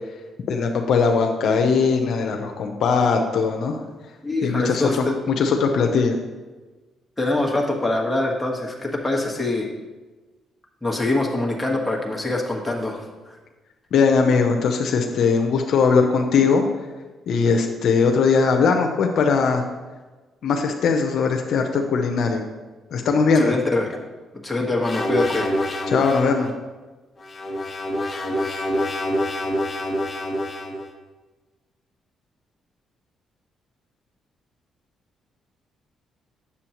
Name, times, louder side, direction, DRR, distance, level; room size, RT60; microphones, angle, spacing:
voice 1, 0.5-3.8 4.4-6.2 13.9-16.6 17.3-19.6 20.4-22.4 22.9-23.6 25.9-26.5, left 5 dB, 70° left, 4 dB, 0.7 m, -20 dB
voice 2, 4.2-5.1 7.2-9.7 10.8-13.0 23.3-23.9 24.4-25.6, left 2 dB, 10° left, -1 dB, 1.4 m, -24 dB
sound 1, 24.8-26.4 27.2-30.8, left 1 dB, 30° left, 1.1 m, -26 dB
8.4 x 7.0 x 3.0 m, 1.2 s
cardioid pair, 90°, 0 cm